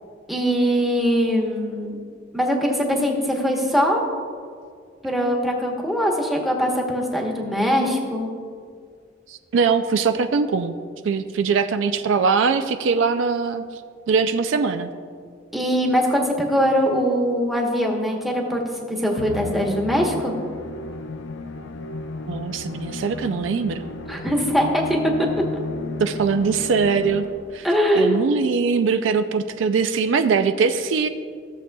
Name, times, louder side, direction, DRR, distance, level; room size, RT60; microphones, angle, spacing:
voice 1, 0.3-2.0 2.3-4.0 5.0-8.3 15.5-20.3 24.1-25.3 27.6-28.2, equal, ahead, -1 dB, 1.0 m, -22 dB
voice 2, 9.3-10.7 11.0-13.6 14.1-14.9 22.2-23.8 26.0-27.3 27.5-27.7 28.0-31.1, right 5 dB, 75° right, 9 dB, 0.4 m, -21 dB
Musical instrument, 19.2-27.7, left 2 dB, 70° left, 0.5 m, -34 dB
14.5 x 7.3 x 2.3 m, 2.1 s
head